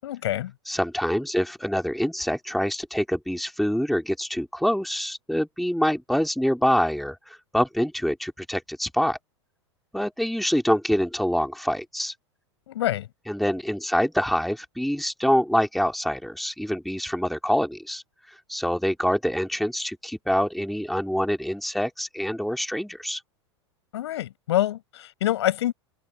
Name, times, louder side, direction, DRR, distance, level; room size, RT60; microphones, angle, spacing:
voice 1, 0.0-0.5 12.7-13.1 23.9-25.7, left 13 dB, 65° left, 6.9 m, -26 dB
voice 2, 0.7-9.2 9.9-12.1 13.3-23.2, equal, ahead, 3.4 m, -25 dB
figure-of-eight pair, 90°, 15 cm